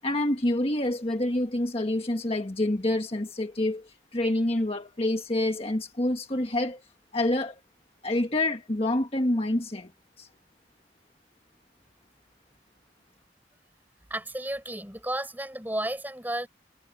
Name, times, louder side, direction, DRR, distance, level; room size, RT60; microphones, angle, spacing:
voice 1, 0.0-6.8 7.1-7.5 8.0-9.9 10.2-10.3, left 1 dB, 35° left, 1.4 m, -27 dB
voice 2, 14.1-16.5, right 1 dB, 10° right, 7.5 m, -32 dB
head